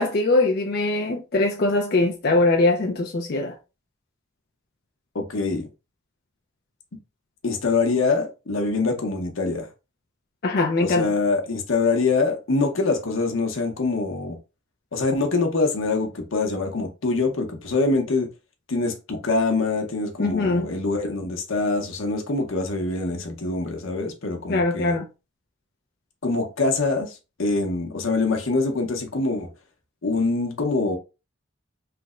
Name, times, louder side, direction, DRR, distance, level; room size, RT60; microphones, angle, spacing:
voice 1, 0.0-3.5 10.4-11.1 20.2-20.7 24.5-25.0, left 2 dB, 50° left, 0.5 m, -22 dB
voice 2, 5.1-5.7 7.4-9.7 10.8-14.4 14.9-18.3 18.7-25.0 26.2-29.5 30.0-31.0, left 3 dB, 80° left, 0.8 m, -24 dB
3.3 x 2.1 x 3.6 m
head